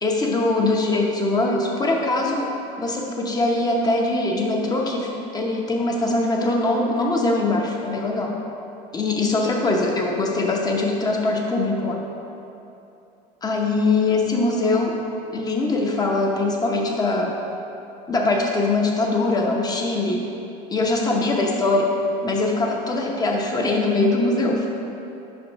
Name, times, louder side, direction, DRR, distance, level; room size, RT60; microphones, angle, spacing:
voice 1, 0.0-2.5 2.8-8.4 8.9-12.0 13.4-15.0 15.3-17.4 18.1-20.2 20.7-21.9 22.2-24.7, left 2 dB, 20° left, 0 dB, 0.8 m, -22 dB
5.4 x 5.1 x 5.1 m, 2.8 s
cardioid pair, 145°, 20 cm